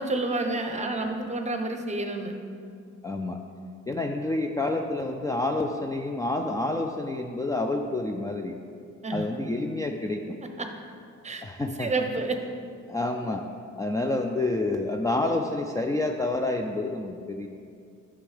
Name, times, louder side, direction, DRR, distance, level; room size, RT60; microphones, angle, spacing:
voice 1, 0.0-2.3 9.0-9.3 10.6-10.7 11.2-11.4 11.8-12.4, right 2 dB, 25° right, 5 dB, 0.8 m, -29 dB
voice 2, 3.0-3.4 3.9-8.6 9.1-10.4 11.4-12.1 12.9-13.5 13.8-17.5, left 2 dB, 10° left, 3 dB, 0.4 m, -28 dB
9.7 x 6.1 x 3.3 m, 2.4 s
cardioid pair, 90°, 30 cm